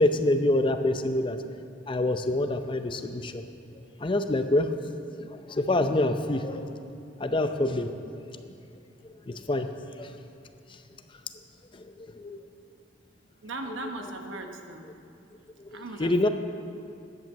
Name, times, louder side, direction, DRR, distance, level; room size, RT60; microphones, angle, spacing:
voice 1, 0.0-1.4 1.9-3.4 4.0-4.7 5.3-6.7 7.2-7.9 9.3-9.7 10.0-10.1 11.8-12.4 15.7-16.3, left 1 dB, 25° left, 8 dB, 0.6 m, -26 dB
voice 2, 13.4-14.8 15.7-16.3, right 2 dB, 80° right, 4 dB, 1.0 m, -38 dB
10.5 x 8.7 x 7.5 m, 2.6 s
head